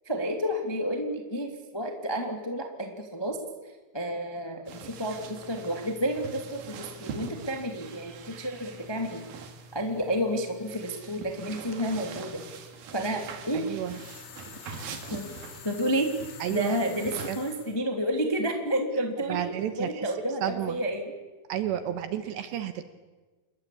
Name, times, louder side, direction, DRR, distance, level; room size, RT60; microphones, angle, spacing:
voice 1, 0.0-3.4 3.9-9.2 9.7-12.4 12.9-13.8 15.1-15.3 15.6-16.1 16.5-21.1, equal, 15° left, 3 dB, 0.9 m, -30 dB
sound 1, 4.7-17.3, right 5 dB, 55° right, 3.2 m, -43 dB
voice 2, 13.5-14.0 16.4-16.8 17.3-17.4 19.3-20.1 20.4-20.8 21.5-22.8, right 11 dB, 70° right, 10 dB, 2.9 m, -31 dB
sound 2, 13.8-17.8, left 10 dB, 80° left, 4.6 m, -47 dB
28.0 x 21.0 x 8.6 m, 1.3 s
omnidirectional pair, 5.9 m